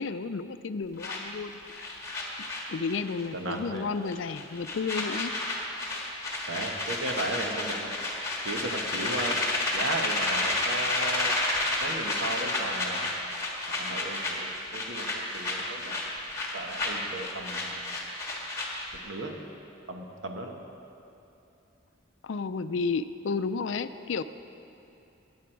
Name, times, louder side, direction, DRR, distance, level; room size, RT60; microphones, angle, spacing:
voice 1, 0.0-2.0 2.7-5.3 22.2-24.2, left 4 dB, 70° left, 12 dB, 0.4 m, -32 dB
sound 1, 1.0-3.3 3.5-3.8 4.1-19.0, left 2 dB, 15° left, 1.6 m, -31 dB
voice 2, 3.3-3.9 6.5-7.9 8.4-11.4 11.8-13.1 13.7-16.0 16.5-17.8 19.0-19.4 19.9-20.5, right 2 dB, 70° right, 3 dB, 1.2 m, -36 dB
15.0 x 9.5 x 4.6 m, 2.8 s
head